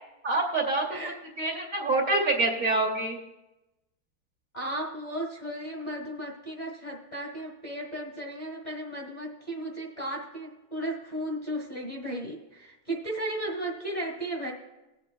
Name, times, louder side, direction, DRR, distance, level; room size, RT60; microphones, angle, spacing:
voice 1, 0.2-0.9 1.4-3.2, right 2 dB, 50° right, 0 dB, 1.1 m, -26 dB
voice 2, 4.5-14.5, right 1 dB, 25° left, -1 dB, 1.0 m, -35 dB
20.5 x 8.2 x 2.3 m, 0.99 s
omnidirectional pair, 2.2 m